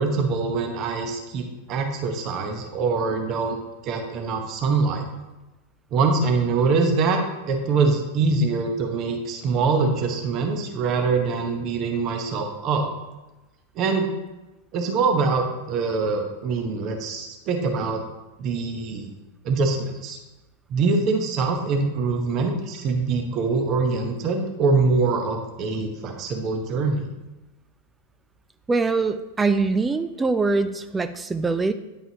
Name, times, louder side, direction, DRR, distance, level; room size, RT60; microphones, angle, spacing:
voice 1, 0.0-3.6 3.8-5.1 5.9-7.2 7.5-12.9 13.7-14.1 14.7-18.0 18.4-19.1 19.4-20.2 20.7-27.1, right 4 dB, 35° right, 4 dB, 1.0 m, -24 dB
voice 2, 28.7-31.7, right 3 dB, 15° right, 10 dB, 0.3 m, -23 dB
10.5 x 5.3 x 2.9 m, 1.1 s
figure-of-eight pair, 90°, 0 cm